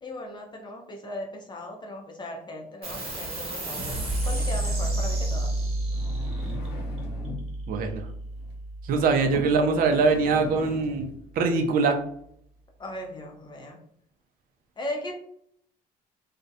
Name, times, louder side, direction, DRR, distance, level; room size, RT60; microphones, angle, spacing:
voice 1, 0.0-5.6 12.8-13.8 14.8-15.1, left 1 dB, 25° left, 1 dB, 0.5 m, -37 dB
sound 1, 2.8-9.7, right 1 dB, 35° right, 0.9 m, -30 dB
sound 2, 5.8-7.5 8.3-8.5 9.2-11.2 11.8-11.9, left 2 dB, 80° left, 0.9 m, -38 dB
voice 2, 7.7-8.0 8.8-11.1 11.4-12.0, right 4 dB, 55° right, 5 dB, 0.4 m, -23 dB
2.3 x 2.1 x 2.6 m, 0.69 s
cardioid pair, 110°, 17 cm